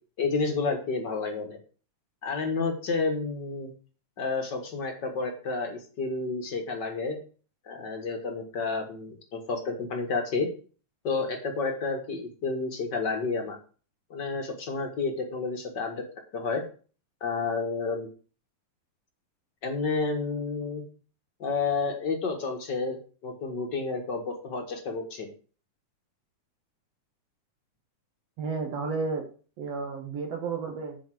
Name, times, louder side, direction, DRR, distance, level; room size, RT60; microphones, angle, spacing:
voice 1, 0.2-1.6 2.2-3.7 4.2-7.2 7.7-10.5 11.0-13.6 14.1-16.0 16.3-16.6 17.2-18.1 19.6-20.8 21.4-23.0 23.2-25.3, left 4 dB, 40° left, 3 dB, 1.8 m, -30 dB
voice 2, 28.4-29.2 29.6-31.0, right 4 dB, 60° right, 4 dB, 2.2 m, -32 dB
8.7 x 5.1 x 7.6 m, 0.39 s
omnidirectional pair, 3.6 m